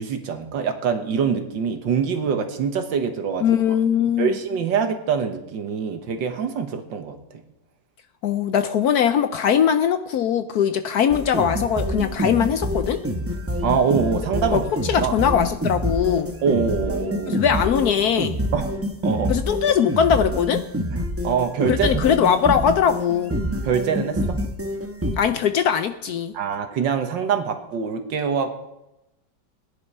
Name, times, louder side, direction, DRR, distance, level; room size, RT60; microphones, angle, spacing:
voice 1, 0.0-3.8 4.2-7.2 13.6-15.2 16.4-17.4 18.5-18.7 19.0-19.3 20.9-22.0 23.6-24.2 26.3-28.5, right 6 dB, 80° right, 6 dB, 1.9 m, -24 dB
voice 2, 3.4-4.3 8.2-13.0 14.5-14.6 14.9-16.3 17.3-18.4 19.3-20.6 21.7-23.3 25.2-26.3, left 8 dB, 70° left, 10 dB, 1.0 m, -20 dB
sound 1, 11.1-25.2, equal, 15° right, 0.6 m, -27 dB
17.0 x 10.0 x 5.5 m, 0.93 s
omnidirectional pair, 2.0 m